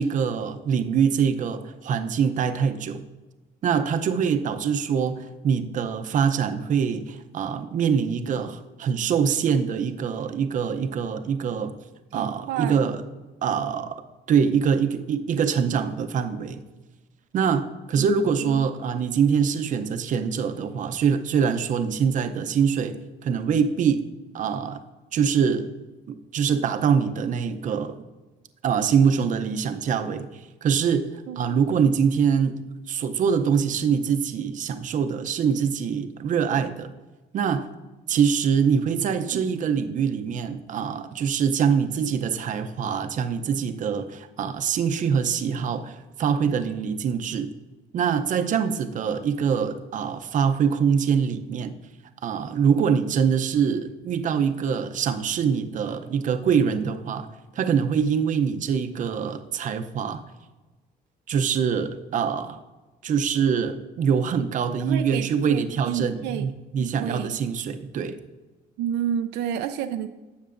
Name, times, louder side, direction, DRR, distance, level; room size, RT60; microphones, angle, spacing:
voice 1, 0.0-3.0 3.6-11.7 12.1-13.0 13.4-14.0 14.3-16.6 17.3-24.0 24.3-24.8 25.1-25.7 26.1-28.0 28.6-32.6 32.9-36.9 37.3-37.7 38.1-47.5 47.9-51.7 52.2-57.3 57.5-60.2 61.3-62.6 63.0-68.2, right 7 dB, 50° right, 8 dB, 0.7 m, -24 dB
voice 2, 12.1-12.8 18.0-18.1 18.4-18.6 31.3-31.4 64.8-66.5 66.8-67.4 68.8-70.1, right 9 dB, 85° right, 8 dB, 0.5 m, -30 dB
12.5 x 7.5 x 2.6 m, 1.2 s
cardioid pair, 110°, 17 cm